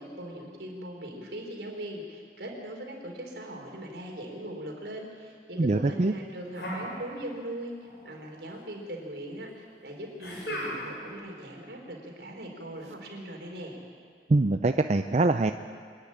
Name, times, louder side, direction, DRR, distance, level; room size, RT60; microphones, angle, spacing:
voice 1, 0.0-7.7 8.0-13.8, right 1 dB, 75° right, 0 dB, 4.1 m, -40 dB
voice 2, 5.6-6.1 14.3-15.5, right 2 dB, 40° right, 8 dB, 0.5 m, -23 dB
sound 1, 6.5-7.6 7.8-8.6 10.2-11.1, equal, 75° left, 5.5 m, -37 dB
25.5 x 10.0 x 10.0 m, 2.1 s
head